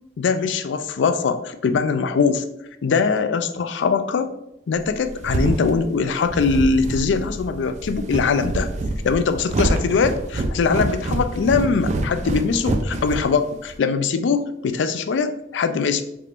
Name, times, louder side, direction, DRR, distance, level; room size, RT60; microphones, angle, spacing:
voice 1, 0.2-2.4 2.8-4.3 4.7-8.7 9.0-16.0, left 5 dB, 80° left, 10 dB, 0.4 m, -21 dB
sound 1, 4.8-13.8, right 2 dB, 40° right, 0.3 m, -26 dB
4.3 x 3.4 x 2.5 m, 0.82 s
head